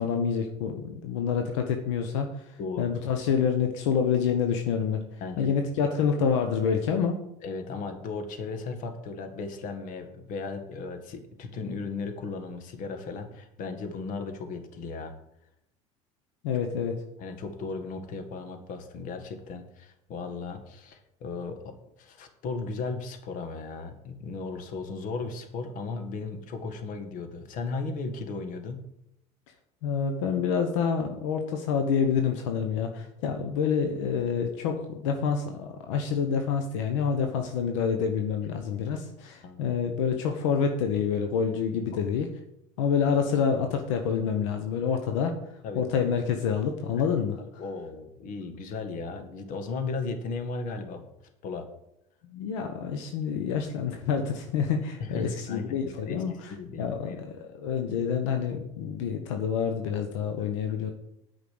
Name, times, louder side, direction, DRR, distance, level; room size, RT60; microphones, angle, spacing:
voice 1, 0.0-2.4 2.8-5.1 5.4-7.2 16.4-17.0 29.8-42.3 42.8-45.4 45.7-47.6 52.3-56.3 56.8-60.9, left 6 dB, 90° left, 5 dB, 1.2 m, -27 dB
voice 2, 2.6-2.9 5.2-5.5 7.4-15.1 17.2-28.8 39.4-39.7 45.6-45.9 47.6-51.1 51.4-51.7 55.0-57.2 60.7-60.9, left 4 dB, 60° left, 6 dB, 1.9 m, -36 dB
9.0 x 5.8 x 7.8 m, 0.80 s
supercardioid pair, 110°, 15 cm